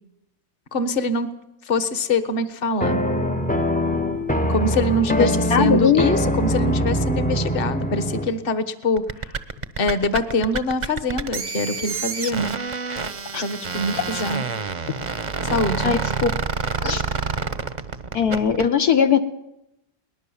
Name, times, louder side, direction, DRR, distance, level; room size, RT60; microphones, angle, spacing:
voice 1, 0.7-1.3 1.6-3.0 4.5-9.4 9.8-12.6 13.4-14.4 15.4-15.9, left 2 dB, 35° left, 11 dB, 1.5 m, -24 dB
sound 1, 2.8-8.4, equal, 5° left, 0.7 m, -23 dB
voice 2, 5.1-6.0 13.3-13.4 13.9-14.0 15.5-15.6 15.8-16.3 16.8-17.0 18.1-19.2, left 7 dB, 70° left, 7 dB, 1.5 m, -19 dB
sound 2, 9.0-18.7, right 5 dB, 35° right, 0.9 m, -28 dB
22.0 x 19.5 x 7.2 m, 0.86 s
omnidirectional pair, 1.8 m